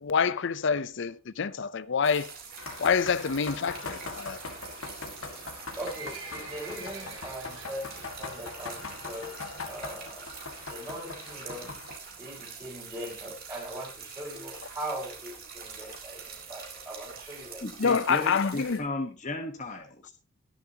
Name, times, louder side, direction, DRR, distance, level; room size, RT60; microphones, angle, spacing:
voice 1, 0.0-2.3 2.8-4.4 17.8-18.8, left 6 dB, 65° left, 0.6 m, -27 dB
sound 1, 2.0-18.8, right 6 dB, 50° right, 4.0 m, -45 dB
sound 2, 2.6-12.0, left 4 dB, 90° left, 1.9 m, -41 dB
voice 2, 5.8-9.4 9.6-10.3 10.7-11.8 12.2-17.6 18.0-18.2, right 1 dB, 20° right, 5.2 m, -40 dB
Livestock farm animals working animals, 5.8-8.1 8.5-8.8 9.1-9.2 9.8-9.9 10.2-10.3 10.5-10.6 11.1-11.4 12.0-12.1 12.3-12.4 12.6-12.7 12.9-13.0 13.4-13.5 14.0-14.1 14.6-14.7, right 4 dB, 75° right, 3.8 m, -46 dB
voice 3, 17.6-20.1, left 2 dB, 40° left, 1.2 m, -35 dB
21.0 x 7.2 x 2.9 m
head